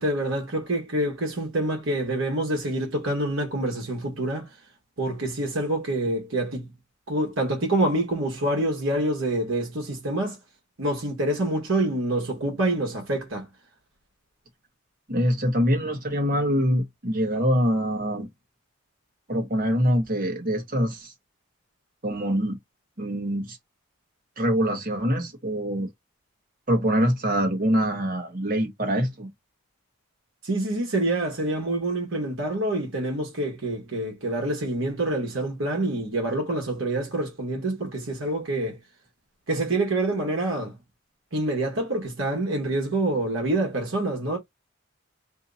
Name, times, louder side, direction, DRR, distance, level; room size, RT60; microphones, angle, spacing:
voice 1, 0.0-4.6 5.0-6.7 7.1-10.4 10.8-13.5 30.4-38.8 39.5-40.8 41.3-44.4, right 1 dB, 70° right, 1.3 m, -26 dB
voice 2, 15.1-18.3 19.3-21.1 22.0-22.6 23.0-23.6 24.4-25.9 26.7-29.3, equal, 40° right, 1.2 m, -24 dB
2.8 x 2.8 x 3.7 m
head